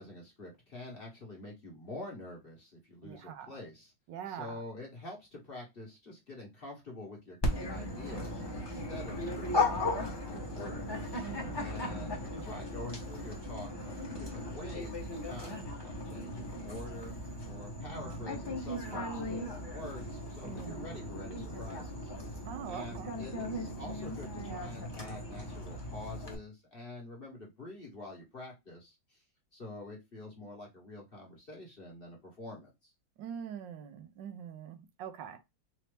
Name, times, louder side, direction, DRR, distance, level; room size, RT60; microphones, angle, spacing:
voice 1, 0.0-3.9 4.3-11.2 11.6-17.1 17.4-22.1 22.7-29.2 29.5-32.9, left 2 dB, 35° left, 1.3 m, -47 dB
voice 2, 3.0-3.6 4.1-4.6 11.2-12.2 12.5-12.6 17.9-18.2 20.4-21.0 22.4-23.2 33.2-35.4, right 8 dB, 75° right, 1.3 m, -44 dB
Dog, 7.4-26.3, left 1 dB, 20° left, 0.8 m, -37 dB
4.3 x 2.7 x 3.2 m
omnidirectional pair, 2.0 m